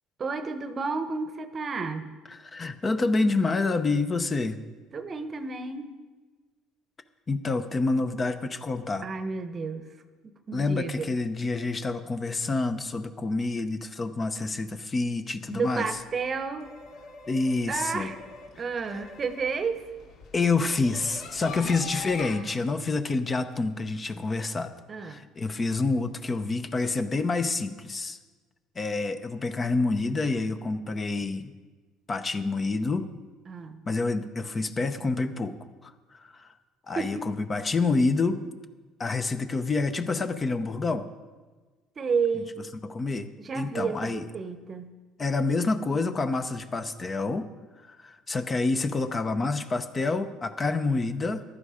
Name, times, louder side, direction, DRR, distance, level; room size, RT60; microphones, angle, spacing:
voice 1, 0.2-2.1 4.9-5.9 9.0-9.9 10.2-11.1 15.5-16.7 17.7-18.2 18.6-19.8 21.6-21.7 24.9-25.2 33.5-33.8 37.0-37.3 42.0-42.5 43.4-44.9, right 5 dB, 30° right, 10 dB, 1.0 m, -31 dB
voice 2, 2.3-4.6 7.3-9.1 10.5-15.9 17.3-18.1 20.3-24.7 25.0-28.2 28.8-31.5 32.1-33.0 33.9-35.5 35.8-36.5 36.9-38.4 39.0-41.1 42.8-44.2 45.2-47.5 47.8-51.4, left 3 dB, 25° left, 9 dB, 0.8 m, -28 dB
sound 1, 15.9-22.3, left 5 dB, 65° left, 2.4 m, -44 dB
15.0 x 12.0 x 5.0 m, 1.3 s
cardioid pair, 120°, 0 cm